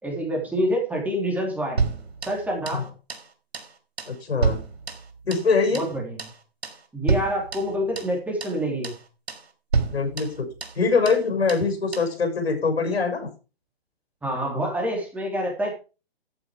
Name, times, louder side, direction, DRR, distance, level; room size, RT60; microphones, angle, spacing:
voice 1, 0.0-1.8 2.2-2.8 5.7-6.2 6.9-8.9 14.2-15.7, equal, 5° right, -1 dB, 3.2 m, -27 dB
sound 1, 1.8-2.8 3.1-3.3 3.5-3.7 4.0-5.5 5.7-5.9 6.2-6.4 6.6-6.8 7.1-8.1 8.4-8.6 8.8-9.0 9.3-9.5 9.7-10.8 11.1-11.2 11.5-11.7 11.9-12.1, right 5 dB, 85° right, 3.5 m, -29 dB
voice 2, 4.1-4.6 5.2-5.9 9.9-10.5 10.7-13.3, left 4 dB, 80° left, 6 dB, 6.6 m, -23 dB
14.0 x 7.2 x 5.0 m, 0.32 s
hypercardioid pair, 145°, 31 cm